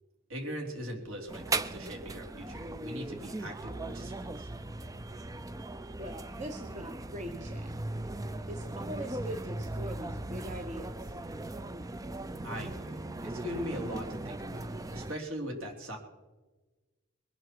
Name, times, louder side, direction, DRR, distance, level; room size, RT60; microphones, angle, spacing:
voice 1, 0.3-4.5 12.4-16.0, equal, 70° right, 1 dB, 3.7 m, -40 dB
sound 1, 1.3-15.2, right 2 dB, 15° right, 0.4 m, -38 dB
voice 2, 6.0-7.7 8.5-11.2, equal, 30° right, 4 dB, 0.9 m, -42 dB
22.0 x 11.0 x 4.7 m, 1.2 s
head